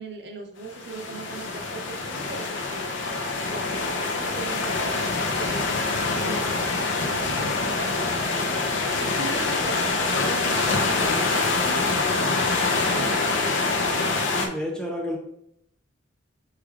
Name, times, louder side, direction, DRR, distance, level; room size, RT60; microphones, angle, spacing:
voice 1, 0.0-2.9 3.4-12.6 12.9-13.6, right 2 dB, 60° right, 2 dB, 0.7 m, -39 dB
sound 1, 0.7-14.5, left 3 dB, 80° left, 0.5 m, -25 dB
voice 2, 14.3-15.2, left 1 dB, 5° left, 0 dB, 0.7 m, -30 dB
6.0 x 3.2 x 2.4 m, 0.72 s
head